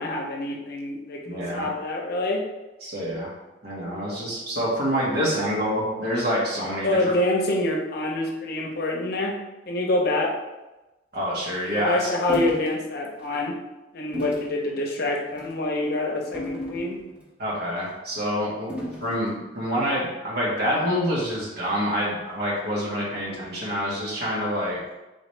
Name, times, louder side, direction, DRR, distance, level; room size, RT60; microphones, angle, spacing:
voice 1, 0.0-2.4 6.8-9.3 9.7-10.3 11.7-13.5 13.9-17.0, left 2 dB, 55° left, 1 dB, 0.7 m, -26 dB
voice 2, 1.2-1.7 2.8-3.3 3.6-7.0 11.1-12.1 17.4-18.7 19.0-24.8, equal, 60° right, -5 dB, 1.5 m, -27 dB
sound 1, 12.3-12.7 13.2-13.4 14.1-14.5 15.3-15.6 16.3-17.3 18.7-19.2, equal, 5° right, 1.0 m, -34 dB
4.0 x 3.9 x 3.2 m, 1.1 s
head